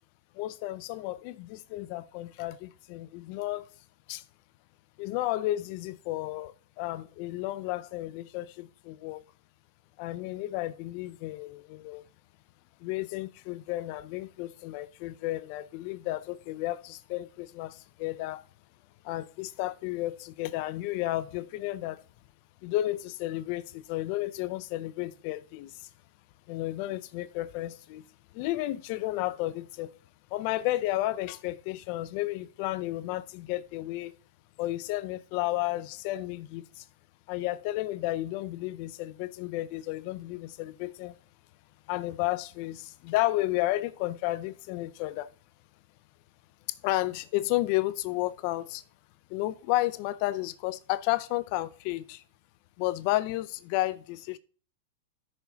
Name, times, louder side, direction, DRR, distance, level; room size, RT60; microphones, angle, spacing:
voice 1, 0.3-3.7 4.1-4.2 5.0-9.2 10.0-12.0 12.8-18.4 19.0-22.0 22.6-25.9 26.5-28.0 28.3-29.9 30.3-34.1 34.6-36.8 37.3-41.1 41.9-45.3 46.8-48.8 49.3-52.2 52.8-54.4, left 16 dB, 45° left, 0.5 m, -32 dB
13.5 x 6.2 x 2.8 m
supercardioid pair, 150°, 0 cm